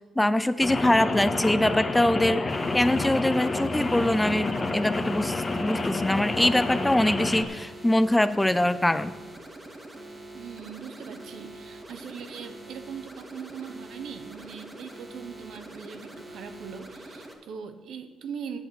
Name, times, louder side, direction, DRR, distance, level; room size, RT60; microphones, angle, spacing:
voice 1, 0.2-2.4 2.7-9.1, left 1 dB, 10° left, 13 dB, 0.5 m, -23 dB
Rain, 0.6-7.4, left 2 dB, 25° left, 1.5 m, -29 dB
sound 1, 2.5-17.3, right 1 dB, 25° right, 2.0 m, -44 dB
voice 2, 10.3-18.6, right 7 dB, 70° right, 8 dB, 1.1 m, -40 dB
8.2 x 8.1 x 8.0 m, 1.3 s
cardioid pair, 90°, 0 cm